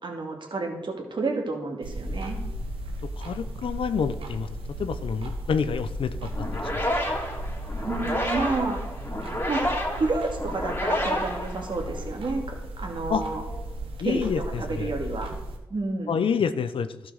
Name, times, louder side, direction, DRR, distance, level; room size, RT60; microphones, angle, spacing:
voice 1, 0.0-2.4 7.8-8.8 9.5-9.6 9.9-12.4 12.8-13.4 14.0-15.4 15.7-16.2, right 3 dB, 60° right, 2 dB, 2.4 m, -30 dB
sound 1, 1.8-15.6, right 1 dB, 85° right, 1.4 m, -35 dB
voice 2, 3.0-4.5 4.8-7.1 13.1-13.2 14.0-14.9 16.1-17.1, left 6 dB, 75° left, 12 dB, 0.7 m, -28 dB
sound 2, 6.3-12.2, left 1 dB, 25° left, 3.1 m, -30 dB
12.0 x 5.8 x 6.4 m, 1.1 s
supercardioid pair, 40°, 9 cm